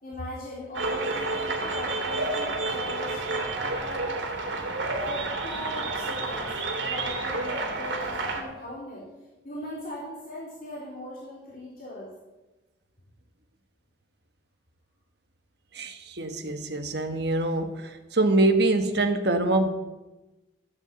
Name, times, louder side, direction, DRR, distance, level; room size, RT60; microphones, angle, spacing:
voice 1, 0.0-4.1 4.9-9.1 9.4-12.1, left 1 dB, 50° left, -6 dB, 3.5 m, -39 dB
sound 1, 0.7-8.4, right 3 dB, 75° right, 2.7 m, -30 dB
voice 2, 15.7-19.7, right 2 dB, 60° right, 6 dB, 1.5 m, -24 dB
14.5 x 8.2 x 8.2 m, 1.1 s
head